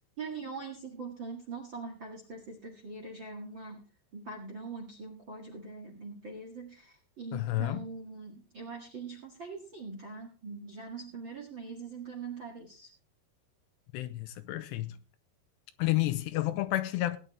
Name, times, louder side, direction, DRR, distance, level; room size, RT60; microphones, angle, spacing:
voice 1, 0.2-3.8 4.1-12.9, right 4 dB, 45° right, 1.6 m, -42 dB
voice 2, 7.3-7.8 13.9-15.0 15.8-17.2, left 16 dB, 80° left, 2.9 m, -30 dB
18.0 x 10.5 x 3.3 m
omnidirectional pair, 5.1 m